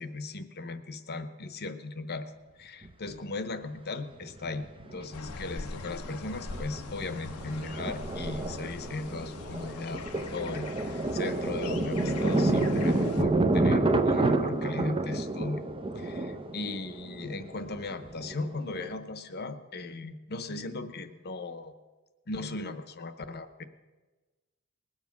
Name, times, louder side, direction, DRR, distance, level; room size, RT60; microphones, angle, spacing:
voice 1, 0.0-2.3 2.6-15.6 15.9-21.7 22.3-23.6, left 3 dB, 50° left, 10 dB, 0.9 m, -37 dB
Thunder, 2.8-2.9 4.3-5.1 5.3-5.4 5.9-6.1 6.5-18.9, right 2 dB, 25° right, 0.7 m, -29 dB
sound 1, 5.1-13.2, left 3 dB, 85° left, 0.8 m, -41 dB
20.0 x 7.4 x 5.9 m, 1.2 s
head